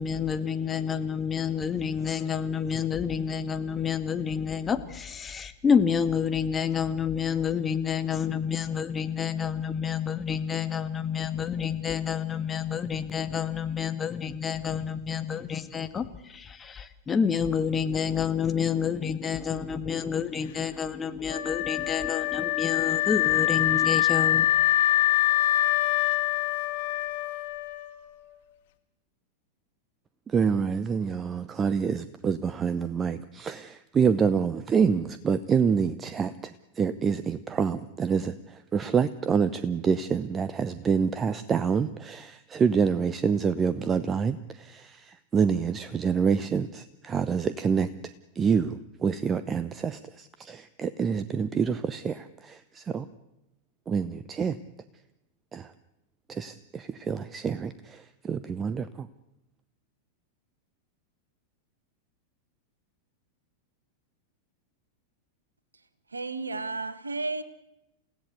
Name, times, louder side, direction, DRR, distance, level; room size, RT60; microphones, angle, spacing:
voice 1, 0.0-24.5, left 7 dB, 20° left, 9 dB, 1.8 m, -29 dB
Wind instrument woodwind instrument, 21.3-28.3, left 14 dB, 55° left, 2.1 m, -25 dB
voice 2, 30.3-53.1 53.9-54.6 55.5-55.7 56.3-59.1, right 6 dB, 20° right, 14 dB, 0.9 m, -27 dB
voice 3, 66.1-67.4, right 3 dB, 80° right, 13 dB, 1.6 m, -32 dB
29.0 x 16.5 x 8.4 m, 0.90 s
figure-of-eight pair, 90°, 0 cm